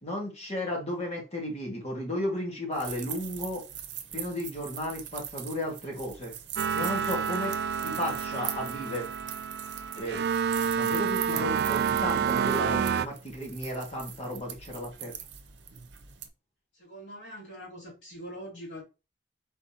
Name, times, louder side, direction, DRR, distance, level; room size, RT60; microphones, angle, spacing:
voice 1, 0.0-3.6 4.1-6.3 6.7-7.5 7.8-9.1 10.0-10.2 10.8-15.1, left 1 dB, 35° left, 1.8 m, -34 dB
sound 1, 2.7-16.3, right 10 dB, 90° right, 0.7 m, -42 dB
sound 2, 6.6-13.1, right 7 dB, 65° right, 0.3 m, -29 dB
voice 2, 16.7-18.8, equal, 90° left, 2.8 m, -43 dB
4.4 x 3.8 x 2.8 m
head